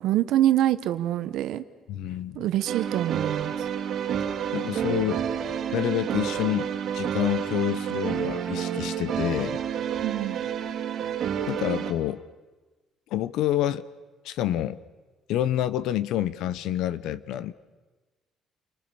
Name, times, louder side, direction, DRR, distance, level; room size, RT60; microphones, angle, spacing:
voice 1, 0.0-1.6 2.3-3.7 10.0-10.4, right 13 dB, 65° right, 11 dB, 1.1 m, -25 dB
voice 2, 1.9-2.4 4.5-5.3 5.7-9.6 11.5-12.2 13.1-13.8 14.2-14.8 15.3-17.5, left 12 dB, 75° left, 17 dB, 0.9 m, -28 dB
sound 1, 2.7-11.9, right 8 dB, 45° right, 2.5 m, -29 dB
29.5 x 25.0 x 7.0 m, 1.3 s
cardioid pair, 180°, 0 cm